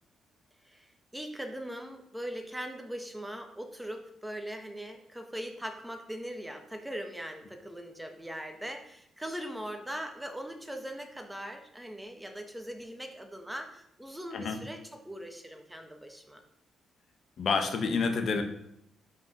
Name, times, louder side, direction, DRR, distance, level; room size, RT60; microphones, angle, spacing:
voice 1, 0.6-16.4, equal, 5° right, 5 dB, 1.4 m, -40 dB
voice 2, 17.4-18.4, left 4 dB, 50° left, 6 dB, 1.6 m, -28 dB
11.5 x 5.9 x 6.5 m, 0.74 s
cardioid pair, 140°, 0 cm